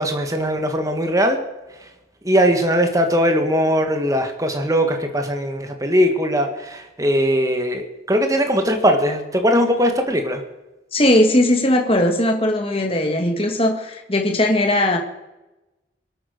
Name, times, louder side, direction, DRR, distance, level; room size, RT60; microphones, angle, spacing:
voice 1, 0.0-1.4 1.8-1.9 2.2-10.4, equal, 15° right, 5 dB, 1.6 m, -20 dB
voice 2, 10.9-15.0, left 1 dB, 30° left, 3 dB, 2.0 m, -18 dB
24.5 x 8.8 x 6.6 m, 1.0 s
head